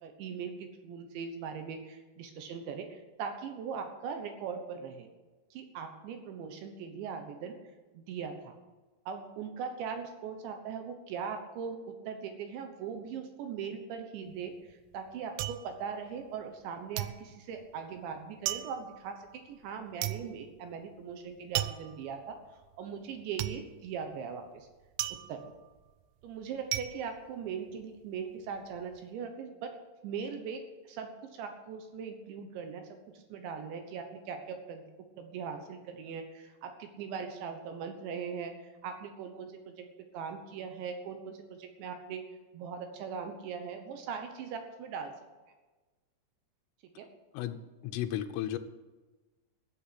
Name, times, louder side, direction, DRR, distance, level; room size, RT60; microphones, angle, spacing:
voice 1, 0.0-5.1 5.5-7.6 7.9-8.5 9.1-22.4 22.8-24.7 25.3-25.5 26.2-29.8 30.0-34.9 35.2-38.6 38.8-39.9 40.1-42.2 42.5-45.1 47.0-47.1, right 6 dB, 70° right, 6 dB, 3.1 m, -40 dB
sound 1, 14.3-16.7 17.0-28.1 28.4-29.0, right 15 dB, 85° right, 2.5 m, -38 dB
voice 2, 47.9-48.6, left 12 dB, 80° left, 10 dB, 3.3 m, -33 dB
14.5 x 7.9 x 8.2 m, 1.2 s
omnidirectional pair, 5.9 m